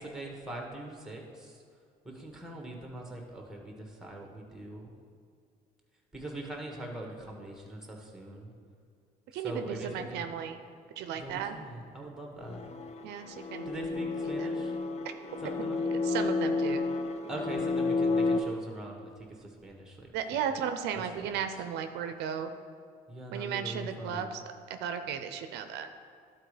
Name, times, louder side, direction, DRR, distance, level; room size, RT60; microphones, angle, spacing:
voice 1, 0.0-1.6 2.0-4.9 6.1-8.5 9.3-10.3 11.1-12.6 13.4-14.8 15.4-15.8 17.3-20.1 20.9-21.4 23.1-24.4, right 1 dB, 5° right, 1 dB, 1.4 m, -42 dB
voice 2, 9.3-10.6 11.0-11.6 13.0-13.7 14.4-14.5 15.4-15.5 16.0-16.8 20.1-22.5 23.3-24.4 24.7-25.9, right 8 dB, 80° right, 8 dB, 0.5 m, -35 dB
sound 1, 12.4-18.4, left 3 dB, 40° left, 0.5 m, -31 dB
11.5 x 4.2 x 5.0 m, 2.2 s
cardioid pair, 110°, 17 cm